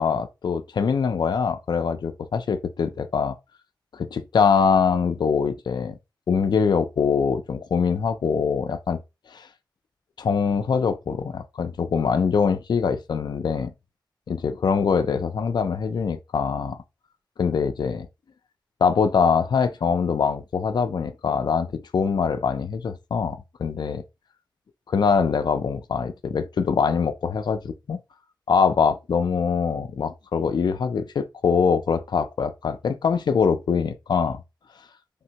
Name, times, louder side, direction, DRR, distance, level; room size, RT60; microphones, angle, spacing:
voice 1, 0.0-3.4 3.9-6.0 6.3-9.0 9.3-9.5 10.2-13.7 14.3-16.8 17.4-18.1 18.8-24.0 24.9-28.0 28.5-34.4, left 6 dB, 70° left, 0.4 m, -23 dB
3.4 x 2.1 x 2.8 m
cardioid pair, 55°, 8 cm